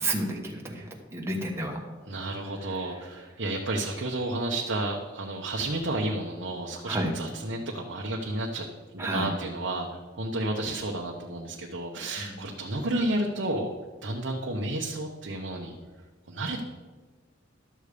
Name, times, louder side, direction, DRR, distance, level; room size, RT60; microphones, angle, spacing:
voice 1, 0.0-1.8 2.7-2.8 6.8-7.1 9.0-9.3 12.2-12.5, right 1 dB, 15° right, -1 dB, 1.3 m, -31 dB
voice 2, 2.1-8.6 8.9-9.9 10.1-13.7 14.0-15.7 16.3-16.6, right 1 dB, 65° right, 0 dB, 0.9 m, -31 dB
12.0 x 6.8 x 5.0 m, 1.3 s
head